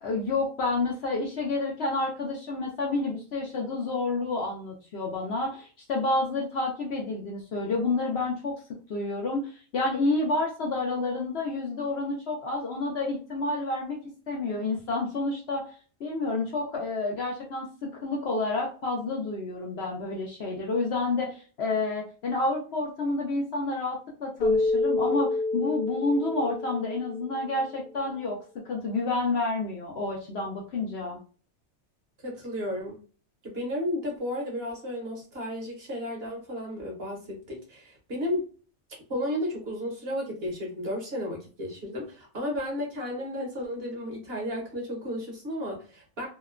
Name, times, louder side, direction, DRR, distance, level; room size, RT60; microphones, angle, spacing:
voice 1, 0.0-8.5 8.9-14.0 14.3-15.6 16.0-28.4 28.6-31.2, left 2 dB, 60° left, -1 dB, 0.7 m, -29 dB
Keyboard (musical), 24.4-27.6, left 2 dB, 85° left, 1.1 m, -28 dB
voice 2, 32.2-33.0 33.4-38.5 39.1-46.3, left 1 dB, 50° right, -1 dB, 1.0 m, -33 dB
2.8 x 2.1 x 2.4 m, 0.38 s
omnidirectional pair, 1.4 m